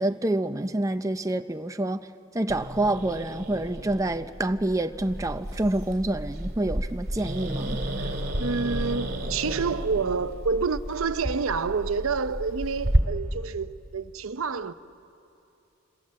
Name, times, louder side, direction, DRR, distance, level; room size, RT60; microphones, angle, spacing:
voice 1, 0.0-2.0 2.3-7.8, right 1 dB, 15° right, 0.5 m, -27 dB
Growling, 2.5-13.0, right 1 dB, 45° right, 2.6 m, -31 dB
voice 2, 8.4-14.7, right 5 dB, 70° right, 0.7 m, -28 dB
27.5 x 26.5 x 7.5 m
head